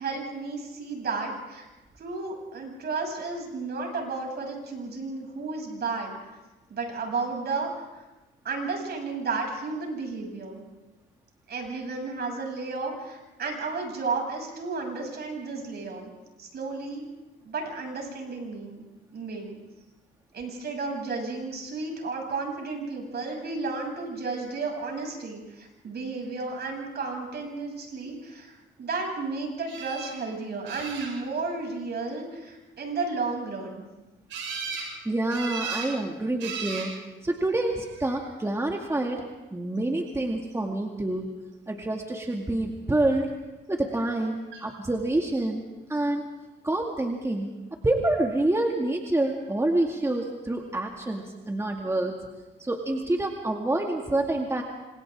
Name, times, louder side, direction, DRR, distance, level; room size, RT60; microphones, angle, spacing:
voice 1, 0.0-1.7 2.0-6.4 6.7-7.7 8.0-8.1 8.4-10.6 11.5-16.1 16.4-17.1 17.4-18.8 19.1-19.6 20.3-33.8, right 4 dB, 55° right, 1 dB, 7.5 m, -33 dB
sound 1, 29.7-30.1 30.7-31.4 34.3-34.9 35.3-35.9 36.4-36.9 37.8-38.3 44.5-44.6 45.0-45.1, right 5 dB, 80° right, 7.4 m, -35 dB
voice 2, 35.0-36.9 37.2-39.2 39.5-41.3 41.7-43.4 43.7-45.6 45.9-46.2 46.6-47.5 47.8-52.2 52.6-54.6, right 2 dB, 15° right, 1 dB, 2.2 m, -27 dB
28.0 x 26.5 x 3.7 m, 1.1 s
cardioid pair, 90°, 20 cm